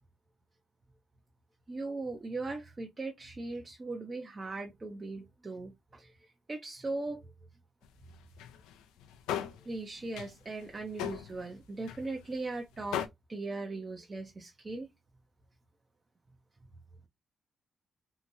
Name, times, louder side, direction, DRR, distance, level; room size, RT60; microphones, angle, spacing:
voice 1, 1.7-6.1 6.5-7.3 9.6-13.0 13.3-14.9, right 3 dB, 35° right, 0.6 m, -39 dB
sound 1, 7.8-7.9 8.2-8.7 9.0-9.6 10.0-10.3 10.6-11.5 11.9-12.1 12.3-12.4 12.9-13.1, left 10 dB, 90° left, 0.3 m, -37 dB
2.8 x 2.5 x 2.6 m
supercardioid pair, 50°, 0 cm